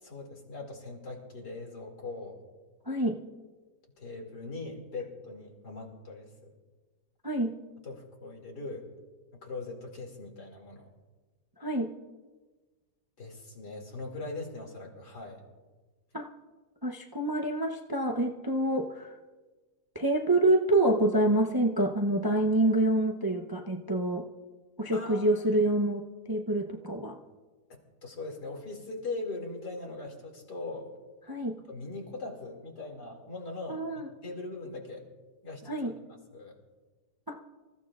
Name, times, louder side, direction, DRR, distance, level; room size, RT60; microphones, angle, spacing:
voice 1, 0.0-2.4 4.0-6.5 7.8-8.8 9.4-10.9 13.2-15.4 24.9-25.6 27.7-30.9 31.7-35.0 35.4-36.0 36.3-36.5, left 3 dB, 85° left, 0 dB, 3.1 m, -41 dB
voice 2, 2.9-3.2 7.2-7.6 11.6-11.9 16.1-16.3 16.8-19.1 19.9-24.3 24.8-27.2 31.3-31.6 33.7-34.1 35.7-35.9 37.3-37.4, right 1 dB, 25° right, 2 dB, 0.4 m, -27 dB
26.5 x 15.0 x 2.4 m, 1.3 s
omnidirectional pair, 1.7 m